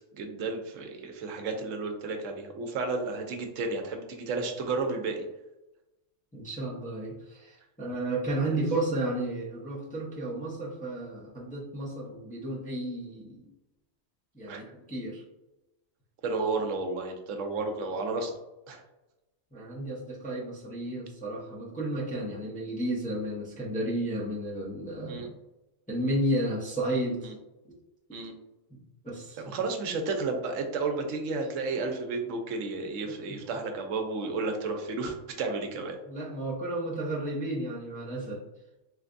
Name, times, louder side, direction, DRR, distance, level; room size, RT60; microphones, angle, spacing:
voice 1, 0.2-5.2 8.5-8.6 14.5-14.6 16.2-18.3 18.7-18.8 25.1-25.3 27.2-27.3 28.1-28.3 29.4-36.0, right 3 dB, 75° right, 4 dB, 0.9 m, -32 dB
voice 2, 6.3-13.5 14.3-15.2 19.5-25.2 25.9-27.3 28.1-28.2 28.7-28.8 29.0-29.4 33.1-33.4 36.1-38.4, right 1 dB, 10° left, -5 dB, 0.4 m, -32 dB
3.3 x 3.2 x 2.5 m, 0.97 s
omnidirectional pair, 1.4 m